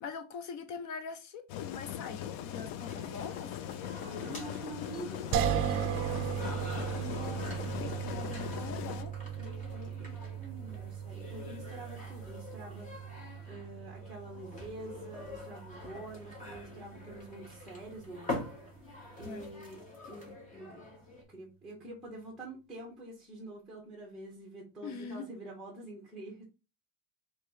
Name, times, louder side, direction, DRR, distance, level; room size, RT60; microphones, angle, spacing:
voice 1, 0.0-3.6 6.0-6.6 6.9-9.1 19.2-19.5 24.8-25.3, left 5 dB, 50° left, 0.7 m, -43 dB
sound 1, 1.5-9.0, left 10 dB, 90° left, 0.6 m, -40 dB
Friends Meeting-Going To Club, 2.8-21.2, left 2 dB, 20° left, 1.5 m, -46 dB
voice 2, 4.0-5.3 9.4-18.4 19.2-19.8 20.1-20.9 21.3-26.4, right 2 dB, ahead, 1.0 m, -47 dB
sound 2, 5.3-18.4, right 9 dB, 40° right, 0.4 m, -38 dB
3.3 x 3.2 x 4.6 m
cardioid pair, 175°, 35 cm